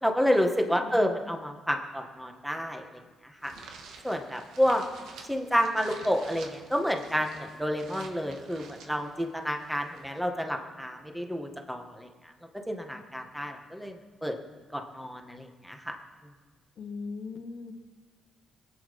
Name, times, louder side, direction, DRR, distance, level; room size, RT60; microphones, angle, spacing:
voice 1, 0.0-2.9 3.4-3.5 4.0-4.9 5.3-12.1 12.7-14.3 14.7-16.0, equal, ahead, 4 dB, 1.6 m, -29 dB
voice 2, 0.7-1.1 16.8-17.7, left 4 dB, 60° left, 6 dB, 1.3 m, -39 dB
sound 1, 3.4-10.2, right 4 dB, 80° right, 1.8 m, -49 dB
22.0 x 8.7 x 5.3 m, 1.4 s
cardioid pair, 90°, 0 cm